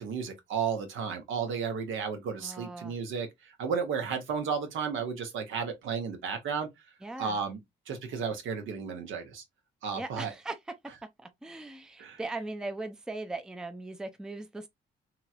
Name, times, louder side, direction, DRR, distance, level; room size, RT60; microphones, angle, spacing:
voice 1, 0.0-6.7 7.2-7.6 7.9-9.4 9.8-10.3 12.0-12.2, right 6 dB, 80° right, 1.0 m, -33 dB
voice 2, 2.4-2.9 7.0-7.4 9.9-10.6 11.2-14.7, right 2 dB, 5° right, 0.4 m, -39 dB
3.0 x 3.0 x 2.3 m
cardioid pair, 90°, 20 cm